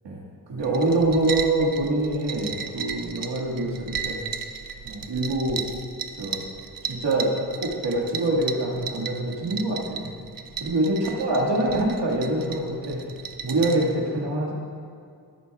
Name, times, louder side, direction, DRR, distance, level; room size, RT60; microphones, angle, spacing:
voice 1, 0.5-4.2 4.8-5.6 6.2-6.4 6.8-7.3 7.6-10.1 10.6-13.0 13.4-14.5, right 2 dB, 80° right, -3 dB, 2.0 m, -25 dB
sound 1, 0.6-13.9, right 7 dB, 55° right, 0.7 m, -35 dB
16.5 x 8.6 x 2.4 m, 2.4 s
cardioid pair, 55°, 42 cm